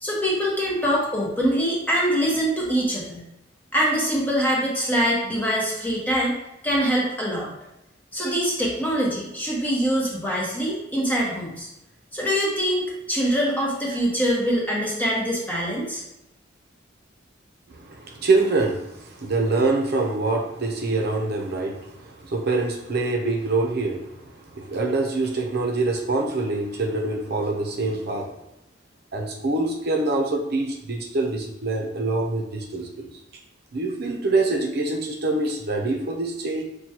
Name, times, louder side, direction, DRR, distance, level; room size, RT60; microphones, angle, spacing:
voice 1, 0.0-3.2 3.7-6.4 6.6-7.5 8.1-11.7 12.1-16.0, equal, 10° left, -4 dB, 1.0 m, -24 dB
voice 2, 17.7-28.3 29.1-33.1 33.7-36.6, right 3 dB, 60° right, 2 dB, 0.6 m, -25 dB
6.0 x 2.3 x 2.8 m, 0.88 s
head